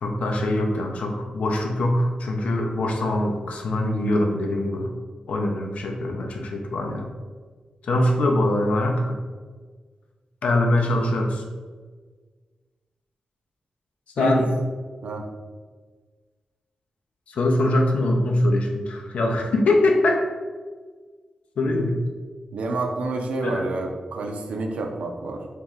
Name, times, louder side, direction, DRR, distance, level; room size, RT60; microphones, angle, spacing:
voice 1, 0.0-4.9 5.3-7.1 7.8-9.2 10.4-11.4 14.2-14.5 17.3-20.2 21.6-21.9 23.4-23.6, left 1 dB, 85° left, 2 dB, 0.5 m, -23 dB
voice 2, 22.5-25.5, right 2 dB, 85° right, 2 dB, 0.5 m, -28 dB
3.1 x 2.9 x 3.6 m, 1.5 s
wide cardioid pair, 125°, 2 cm